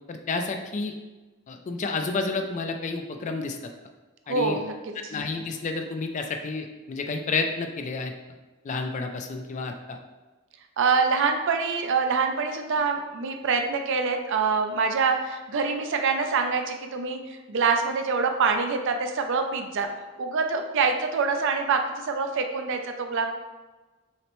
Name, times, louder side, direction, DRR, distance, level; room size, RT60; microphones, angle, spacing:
voice 1, 0.1-0.9 1.5-3.6 4.3-4.6 5.1-8.1 8.6-10.0, left 3 dB, 35° left, 5 dB, 0.3 m, -30 dB
voice 2, 4.3-4.7 10.8-19.9 20.2-23.3, right 5 dB, 60° right, 5 dB, 0.4 m, -25 dB
5.7 x 2.1 x 3.0 m, 1.2 s
head